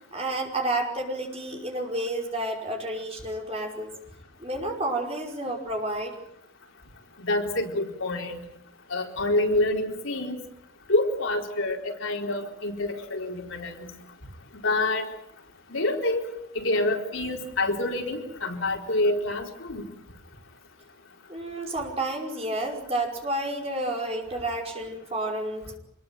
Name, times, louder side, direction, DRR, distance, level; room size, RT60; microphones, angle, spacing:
voice 1, 0.1-3.9 4.4-6.1 21.3-25.7, right 1 dB, 30° right, 1 dB, 5.4 m, -30 dB
voice 2, 7.2-8.4 8.9-10.4 10.9-13.9 14.6-15.1 15.7-16.3 16.5-19.9, left 2 dB, 75° left, 2 dB, 4.3 m, -27 dB
26.0 x 21.0 x 9.2 m, 0.77 s
head